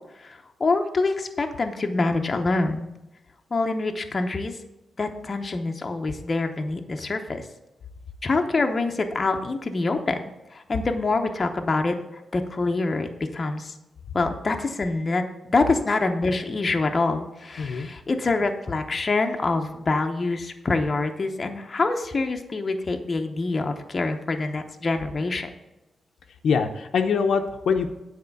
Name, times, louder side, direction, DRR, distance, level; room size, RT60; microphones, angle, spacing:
voice 1, 0.2-2.9 3.5-4.6 5.0-7.5 8.2-10.2 10.5-11.9 12.3-13.7 14.1-25.5, left 3 dB, 30° left, 4 dB, 0.8 m, -25 dB
voice 2, 17.6-17.9 26.4-28.0, left 5 dB, 75° left, 6 dB, 0.7 m, -23 dB
9.4 x 4.4 x 7.0 m, 0.99 s
wide cardioid pair, 145°, 0 cm